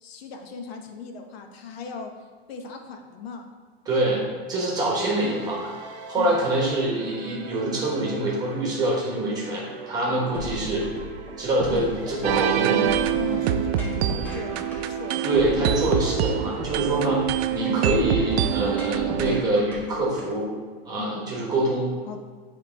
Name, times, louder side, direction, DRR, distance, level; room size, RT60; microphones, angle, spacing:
voice 1, 0.0-2.1 2.5-3.5 6.2-6.4 10.0-10.3 11.7-11.9 12.8-15.4 17.0-17.2 21.0-21.3 22.1-22.2, left 5 dB, 70° left, 4 dB, 0.9 m, -37 dB
voice 2, 3.8-5.7 6.1-10.8 11.4-12.9 15.2-17.2 17.5-20.5 20.8-21.9, right 1 dB, 10° right, -4 dB, 1.1 m, -25 dB
sound 1, 5.1-18.8, right 4 dB, 35° right, 0.9 m, -42 dB
sound 2, 10.3-20.3, right 1 dB, 5° left, 0.3 m, -36 dB
sound 3, 12.2-19.4, right 10 dB, 75° right, 0.5 m, -25 dB
8.3 x 3.1 x 4.4 m, 1.5 s
supercardioid pair, 175°, 32 cm